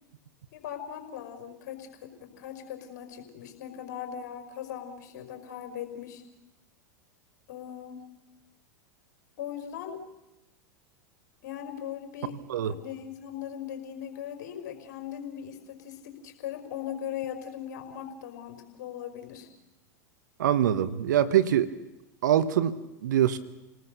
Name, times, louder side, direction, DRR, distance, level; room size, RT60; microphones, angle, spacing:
voice 1, 0.5-6.2 7.5-8.1 9.4-10.0 11.4-12.4 12.6-19.5, left 9 dB, 60° left, 5 dB, 5.3 m, -39 dB
voice 2, 20.4-21.7 22.2-23.4, right 10 dB, 70° right, 14 dB, 1.2 m, -24 dB
29.0 x 19.0 x 6.8 m, 0.95 s
hypercardioid pair, 95°, 10 cm